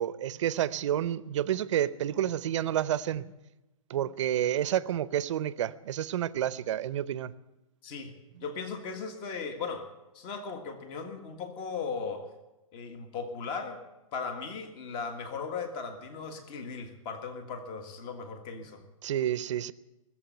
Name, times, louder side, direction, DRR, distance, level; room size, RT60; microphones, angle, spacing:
voice 1, 0.0-3.3 3.9-7.3 19.0-19.7, right 11 dB, 55° right, 17 dB, 0.7 m, -29 dB
voice 2, 7.8-8.1 8.4-9.9 10.1-12.3 12.7-13.8 14.1-18.8, left 5 dB, 30° left, 7 dB, 1.7 m, -37 dB
19.5 x 7.6 x 9.3 m, 1.0 s
hypercardioid pair, 145°, 18 cm